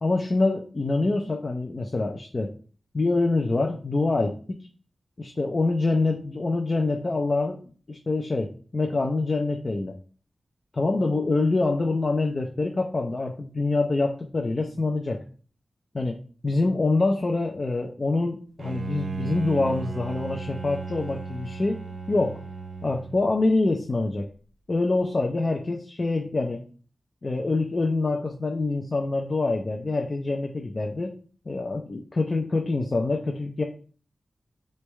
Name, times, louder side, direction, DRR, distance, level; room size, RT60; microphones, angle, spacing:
voice 1, 0.0-2.5 2.9-4.7 5.2-7.6 7.9-9.9 10.7-15.2 15.9-16.2 16.4-21.8 22.1-22.4 22.8-24.3 24.7-26.6 27.2-31.1 31.5-33.6, left 3 dB, 40° left, 2 dB, 0.4 m, -25 dB
Bowed string instrument, 18.6-23.5, right 4 dB, 60° right, 0.9 m, -35 dB
3.4 x 3.2 x 3.1 m, 0.40 s
wide cardioid pair, 125°, 0 cm